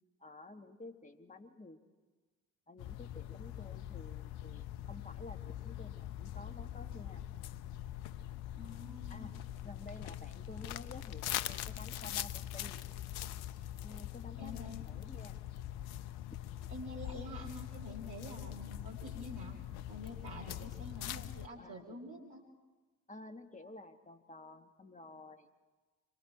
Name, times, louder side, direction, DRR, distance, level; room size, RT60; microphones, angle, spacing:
voice 1, 0.2-1.8 2.7-7.2 9.1-9.3 9.6-12.8 13.8-15.4 16.3-16.4 20.4-20.8 21.6-22.0 23.1-25.5, left 2 dB, 20° left, 6 dB, 2.3 m, -52 dB
sound 1, 2.8-21.5, left 12 dB, 65° left, 0.9 m, -43 dB
voice 2, 8.6-9.3 14.4-14.8 16.7-19.6 19.9-22.4, left 1 dB, 65° right, -3 dB, 3.5 m, -47 dB
26.5 x 22.5 x 4.5 m, 1.3 s
figure-of-eight pair, 50°, 42 cm